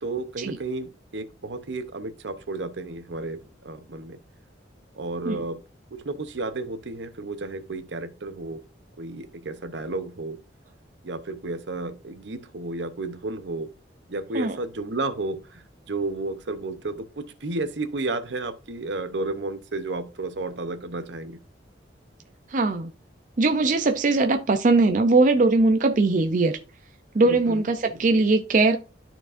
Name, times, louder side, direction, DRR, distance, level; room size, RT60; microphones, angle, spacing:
voice 1, 0.0-4.2 4.9-5.6 5.9-8.6 9.0-10.4 11.0-13.7 14.1-21.4 27.2-27.6, right 2 dB, 70° right, 0.8 m, -32 dB
voice 2, 22.5-22.9 23.4-26.6 27.1-28.8, right 3 dB, 45° right, 0.5 m, -20 dB
12.5 x 4.5 x 2.5 m
head